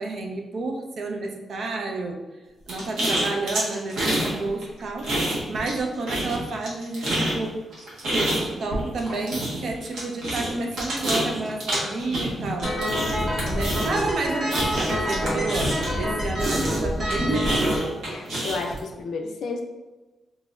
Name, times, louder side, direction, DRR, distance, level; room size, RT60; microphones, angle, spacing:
voice 1, 0.0-2.2 2.7-5.1 5.5-7.6 8.1-12.7 13.5-17.7, right 2 dB, 70° right, 2 dB, 0.5 m, -30 dB
sound 1, 2.7-4.3 4.6-5.8 6.1-16.0 16.4-18.8, right 1 dB, 90° right, 1.2 m, -27 dB
sound 2, 12.6-17.8, equal, 45° right, 1.4 m, -27 dB
voice 2, 18.1-19.6, left 4 dB, 80° left, 2 dB, 0.5 m, -32 dB
3.8 x 3.0 x 2.4 m, 1.2 s
cardioid pair, 85°, 0 cm